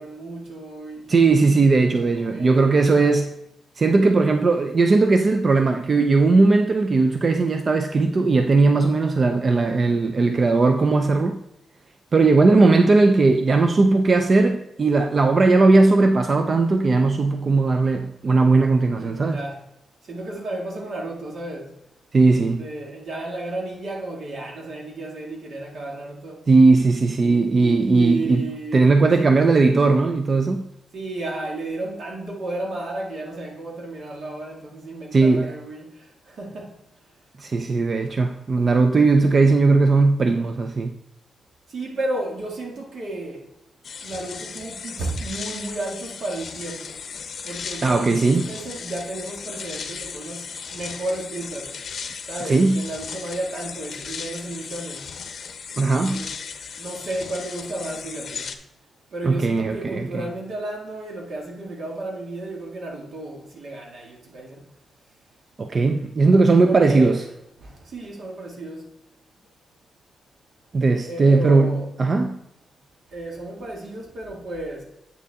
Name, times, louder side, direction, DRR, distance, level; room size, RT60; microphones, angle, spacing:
voice 1, 0.0-1.1 1.7-3.2 18.9-19.6 20.1-21.7 22.5-26.4 27.2-29.5 30.9-35.8 36.3-36.7 41.7-43.4 44.0-46.9 47.4-51.7 52.3-55.1 55.8-56.3 56.8-58.5 59.1-64.6 66.6-67.2 67.6-68.8 71.1-71.9 73.1-74.8, right 2 dB, 65° right, 2.1 m, -33 dB
voice 2, 1.1-3.3 3.8-11.4 12.1-19.4 22.1-22.6 26.5-28.5 28.7-30.6 35.1-35.5 37.4-41.0 47.8-48.5 52.5-52.8 55.8-56.3 59.2-60.3 65.6-67.2 70.7-72.4, right 3 dB, 40° right, 0.5 m, -18 dB
sound 1, 43.8-58.5, left 6 dB, 60° left, 0.8 m, -36 dB
8.4 x 6.7 x 3.6 m
wide cardioid pair, 125°, 0 cm